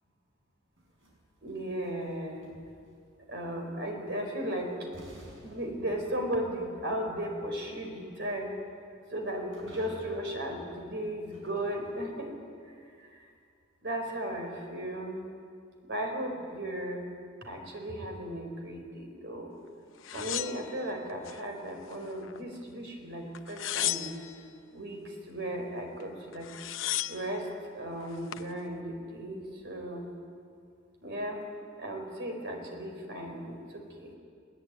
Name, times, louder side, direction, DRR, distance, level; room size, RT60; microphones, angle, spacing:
sound 1, 0.8-3.1 4.4-4.5 4.9-12.4, equal, 90° right, 6.7 m, -54 dB
voice 1, 1.4-2.5 3.3-4.7 5.0-5.1 5.4-8.5 9.1-12.3 13.8-15.2 15.9-17.0 17.4-19.5 20.1-24.2 24.7-25.0 25.3-26.5 27.1-27.5 27.7-30.1 31.0-31.4 31.8-34.1, right 1 dB, 60° right, 3 dB, 4.5 m, -36 dB
sound 2, 20.0-21.4 21.8-22.6 23.4-24.4 26.0-26.1 26.3-27.3 28.0-28.5, left 13 dB, 80° left, 0.7 m, -35 dB
20.5 x 20.0 x 9.3 m, 2.3 s
head